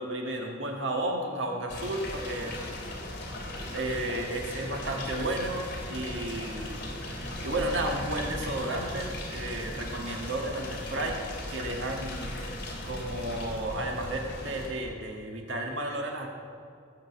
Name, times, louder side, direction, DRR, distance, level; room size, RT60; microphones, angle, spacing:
voice 1, 0.0-2.5 3.7-11.2 11.5-12.4 12.8-16.3, right 1 dB, 75° right, 1 dB, 1.8 m, -33 dB
sound 1, 1.7-14.7, left 1 dB, 60° left, 3.3 m, -37 dB
18.0 x 6.7 x 8.2 m, 2.4 s
head